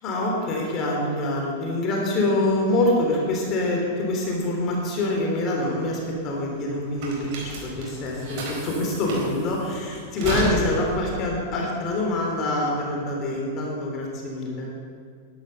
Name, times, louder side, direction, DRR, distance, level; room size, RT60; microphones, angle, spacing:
voice 1, 0.0-14.7, left 1 dB, 40° left, -1 dB, 3.5 m, -25 dB
sound 1, 5.7-12.5, right 2 dB, 50° right, 4.4 m, -33 dB
11.5 x 11.5 x 6.7 m, 2.2 s
hypercardioid pair, 120°, 0 cm